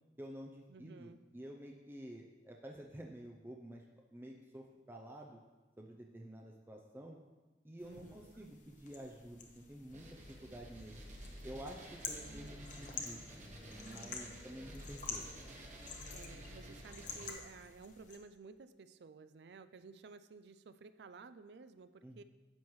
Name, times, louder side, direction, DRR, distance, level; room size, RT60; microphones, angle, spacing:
voice 1, 0.2-3.8 4.1-5.4 5.8-7.2 7.6-10.1 10.4-11.0 11.4-13.2 13.7-15.3 22.0-22.2, right 1 dB, 15° right, 1 dB, 0.5 m, -50 dB
voice 2, 0.7-1.2 7.8-8.5 12.2-12.8 16.1-22.2, right 4 dB, 70° right, 12 dB, 0.4 m, -55 dB
sound 1, 7.8-18.2, left 5 dB, 45° left, 1.0 m, -49 dB
sound 2, 9.9-17.3, equal, 45° right, 1.3 m, -51 dB
10.5 x 7.2 x 3.2 m, 1.2 s
head